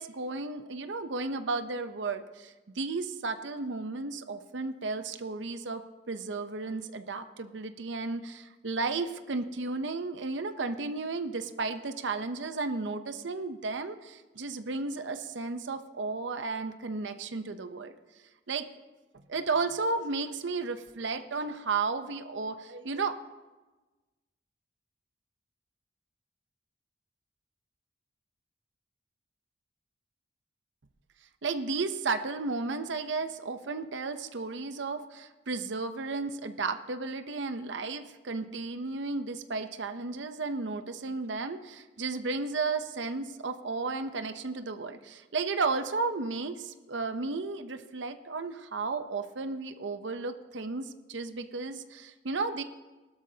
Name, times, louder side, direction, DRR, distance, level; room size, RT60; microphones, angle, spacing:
voice 1, 0.0-5.8 6.1-17.9 18.5-18.6 19.3-23.2 31.4-52.6, right 3 dB, 80° right, 9 dB, 0.7 m, -33 dB
19.0 x 12.5 x 2.8 m, 1.2 s
head